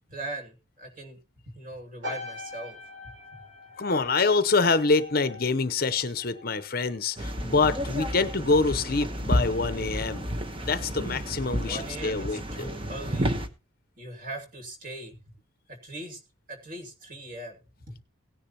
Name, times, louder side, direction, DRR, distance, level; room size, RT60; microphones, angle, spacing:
voice 1, 0.1-1.2 1.5-2.8 3.0-3.4 11.5-13.3 14.0-15.2 15.7-16.2 16.5-18.0, right 1 dB, 40° right, 2 dB, 2.6 m, -40 dB
sound 1, 2.0-6.6 6.9-7.3, left 2 dB, 75° right, 5.3 m, -42 dB
voice 2, 3.8-10.3 10.6-12.7, left 3 dB, 45° left, 13 dB, 0.8 m, -26 dB
sound 2, 7.2-13.5, equal, 25° right, 1.1 m, -31 dB
17.5 x 10.0 x 2.9 m, 0.30 s
head